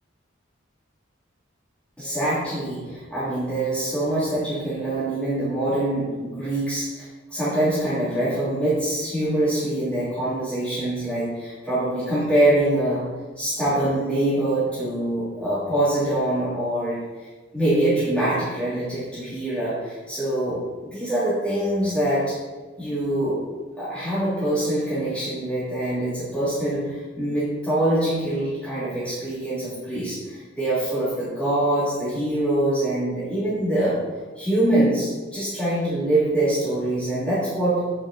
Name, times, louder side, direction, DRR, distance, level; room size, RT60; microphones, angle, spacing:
voice 1, 2.0-13.1 13.4-17.0 17.5-22.3 22.8-23.4 23.8-34.0 34.3-37.9, right 1 dB, 5° left, -13 dB, 2.9 m, -24 dB
9.0 x 6.3 x 4.3 m, 1.4 s
head